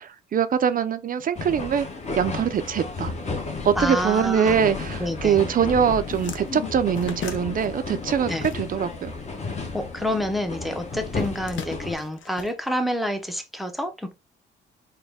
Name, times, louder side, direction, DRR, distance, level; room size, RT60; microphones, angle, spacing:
voice 1, 0.0-1.9 2.1-3.1 3.6-9.2, right 8 dB, 45° right, 0.4 m, -23 dB
sound 1, 1.4-12.0, left 4 dB, 35° left, 1.1 m, -33 dB
voice 2, 3.8-4.6 5.0-5.4 8.3-8.4 9.7-14.1, left 1 dB, ahead, 0.6 m, -28 dB
sound 2, 6.0-9.1 9.3-10.5 11.1-13.2, left 7 dB, 75° left, 0.7 m, -39 dB
4.1 x 2.2 x 3.4 m
cardioid pair, 90°, 20 cm